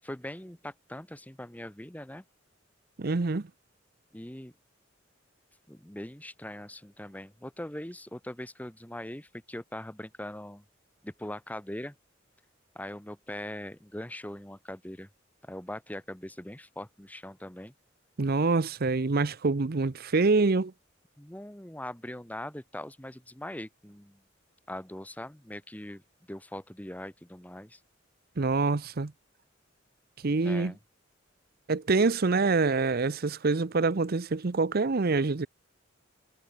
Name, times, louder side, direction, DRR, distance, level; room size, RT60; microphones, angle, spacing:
voice 1, 0.0-2.2 4.1-4.5 5.7-10.6 11.0-12.0 12.8-15.1 15.4-17.7 21.2-24.2 24.7-26.0 26.3-27.8 30.4-30.8, left 1 dB, 10° left, 1.6 m, -41 dB
voice 2, 3.0-3.5 18.2-20.7 28.4-29.1 30.2-30.7 31.7-35.5, right 3 dB, 50° right, 0.7 m, -26 dB
head